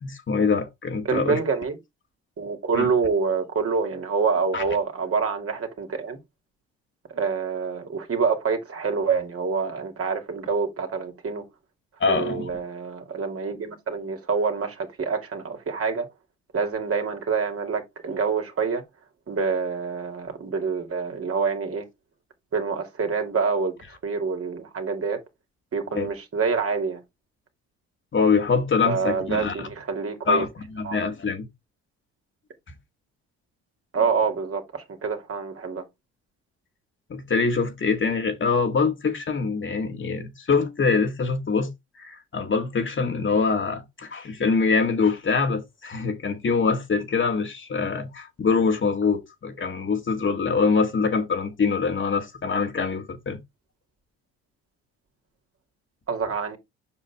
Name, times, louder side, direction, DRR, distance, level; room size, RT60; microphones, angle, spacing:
voice 1, 0.0-1.4 2.8-2.9 4.5-4.6 12.0-12.5 25.9-26.1 28.1-29.7 30.3-30.5 30.8-31.5 37.1-53.4, left 5 dB, 40° left, 1.8 m, -24 dB
voice 2, 1.0-1.8 2.4-6.2 7.1-11.4 12.1-16.1 16.5-18.8 19.3-21.9 22.5-25.2 25.7-27.0 28.8-30.4 30.8-31.0 33.9-35.9 56.1-56.6, right 5 dB, 45° right, 2.6 m, -26 dB
7.4 x 5.6 x 3.5 m
supercardioid pair, 65°, 31 cm